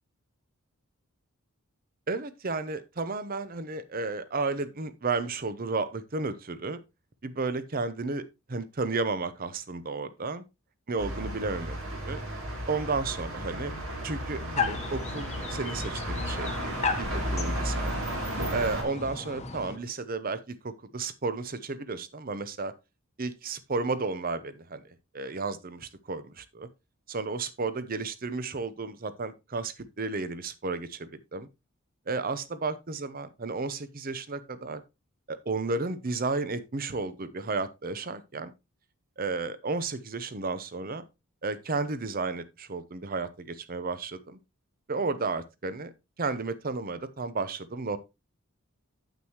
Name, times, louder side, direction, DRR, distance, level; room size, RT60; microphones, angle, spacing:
voice 1, 2.1-6.8 7.2-10.4 10.9-11.8 12.1-12.2 12.7-13.7 14.0-18.0 18.5-22.7 23.2-26.7 27.1-31.5 32.1-34.8 35.3-38.5 39.2-41.0 41.4-44.4 44.9-45.9 46.2-48.0, right 3 dB, 40° right, 0.8 m, -33 dB
sound 1, 11.0-18.8, right 1 dB, 65° right, 2.7 m, -33 dB
sound 2, 14.6-19.8, left 4 dB, 30° left, 1.1 m, -35 dB
9.0 x 8.1 x 3.0 m
head